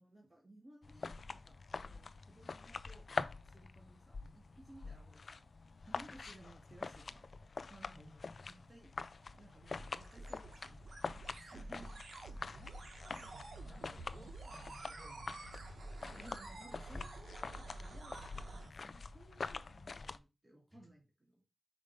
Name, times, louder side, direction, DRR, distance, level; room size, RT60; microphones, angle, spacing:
voice 1, 0.0-5.5 5.9-7.3 7.7-8.2 8.5-8.9 9.3-12.0 16.2-21.4, right 1 dB, 30° right, -1 dB, 2.0 m, -59 dB
sound 1, 0.8-20.2, left 4 dB, 65° left, 0.5 m, -46 dB
voice 2, 7.8-8.2 12.5-15.8 16.0-16.6 20.7-20.9, left 1 dB, 10° left, -3 dB, 3.6 m, -61 dB
sound 2, 8.8-18.7, right 2 dB, 90° right, 1.4 m, -50 dB
5.2 x 5.2 x 5.2 m, 0.28 s
wide cardioid pair, 70°, 0 cm